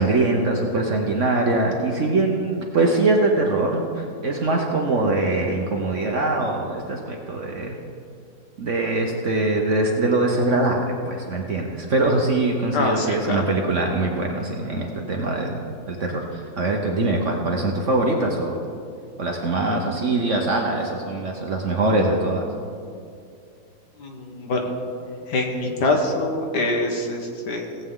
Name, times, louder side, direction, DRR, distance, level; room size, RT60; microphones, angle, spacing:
voice 1, 0.0-7.8 8.6-15.6 15.9-18.6 19.2-22.5, right 2 dB, 50° right, 1 dB, 1.0 m, -23 dB
voice 2, 12.7-13.4 24.0-24.6 25.3-27.8, left 2 dB, 60° left, 2 dB, 1.7 m, -24 dB
18.0 x 8.0 x 3.8 m, 2.4 s
omnidirectional pair, 2.1 m